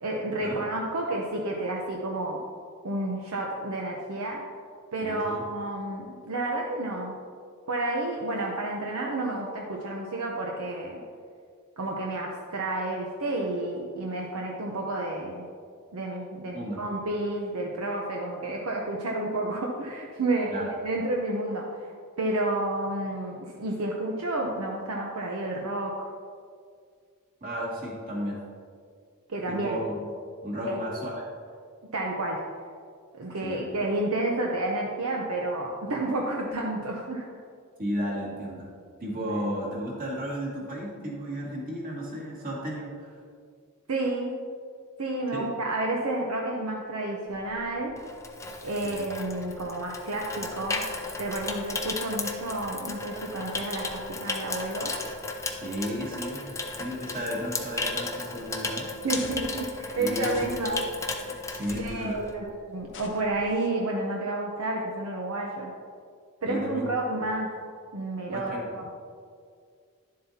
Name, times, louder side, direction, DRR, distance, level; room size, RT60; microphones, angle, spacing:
voice 1, 0.0-2.4 2.8-4.4 4.9-7.2 7.7-11.0 11.8-15.4 15.9-21.9 22.2-26.1 29.3-29.8 30.6-30.8 31.9-32.4 33.1-37.4 39.3-39.4 43.9-44.3 45.0-47.9 48.6-50.8 51.2-54.9 59.0-60.8 61.2-61.4 61.8-65.7 66.4-67.5 67.9-68.8, right 2 dB, 70° right, -1 dB, 0.8 m, -30 dB
voice 2, 5.0-5.4 16.5-16.8 20.5-20.7 27.4-28.4 29.5-29.9 30.4-31.2 33.4-33.8 37.8-38.7 39.0-43.2 45.3-45.5 48.8-49.1 55.6-58.9 60.0-60.7 61.5-62.2 66.4-66.9 68.3-68.6, equal, 40° right, -4 dB, 2.1 m, -34 dB
Water tap faucet / Sink (filling or washing), 47.4-62.5 62.8-63.1, left 3 dB, 15° left, 0.6 m, -35 dB
sound 1, 59.1-59.6 60.2-60.8 61.6-62.1 62.9-63.7, left 3 dB, 60° left, 0.8 m, -44 dB
10.5 x 7.5 x 2.8 m, 2.1 s
head